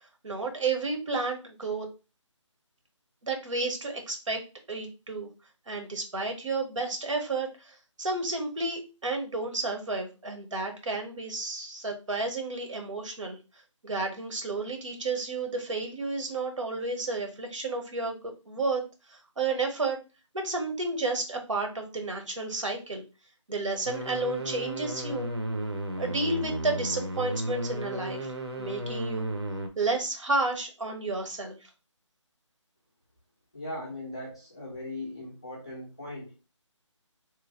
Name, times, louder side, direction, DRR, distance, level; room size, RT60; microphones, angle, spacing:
voice 1, 0.2-1.9 3.2-4.4 4.7-5.3 5.7-13.4 13.8-18.8 19.1-20.0 20.3-23.0 23.5-25.3 26.0-28.3 28.6-29.3 29.8-31.6, right 3 dB, 75° right, 3 dB, 1.2 m, -31 dB
sound 1, 23.8-29.7, right 1 dB, 55° right, 0.8 m, -34 dB
voice 2, 33.5-36.4, left 1 dB, 10° left, -8 dB, 0.5 m, -39 dB
3.1 x 2.2 x 3.8 m, 0.30 s
hypercardioid pair, 175°, 16 cm